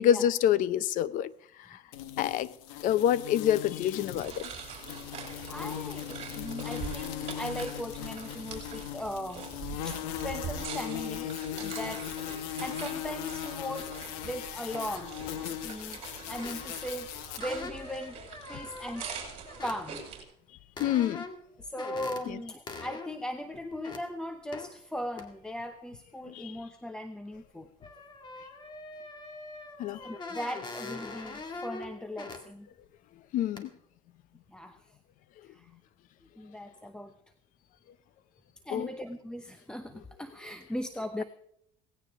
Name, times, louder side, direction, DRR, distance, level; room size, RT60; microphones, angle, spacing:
voice 1, 0.0-1.3 1.7-1.8 2.2-2.5 2.8-4.5 20.8-21.2 22.3-22.4 26.3-26.6 29.8-30.0 33.3-33.7 38.7-38.9, left 10 dB, 55° left, 0.7 m, -27 dB
sound 1, 1.9-17.4, left 11 dB, 90° left, 1.3 m, -39 dB
sound 2, 4.1-20.2, right 6 dB, 40° right, 5.7 m, -44 dB
voice 2, 5.5-9.5 9.8-12.1 12.6-14.0 14.2-15.2 15.4-16.0 16.3-17.1 17.4-18.2 18.5-19.1 19.6-20.0 21.6-27.7 30.0-32.7 34.5-34.8 35.5-35.7 36.4-37.1 38.7-41.2, left 1 dB, 5° left, 0.8 m, -38 dB
sound 3, 15.2-15.4 16.3-16.9 17.4-19.8 20.8-21.5 21.8-22.2 22.7-23.1 23.5-24.0 24.5-24.7 25.2-25.3 27.3-27.4 27.8-32.4 32.8-32.9 33.6-33.7, left 3 dB, 30° left, 2.2 m, -43 dB
18.0 x 16.5 x 3.6 m
cardioid pair, 135°, 16 cm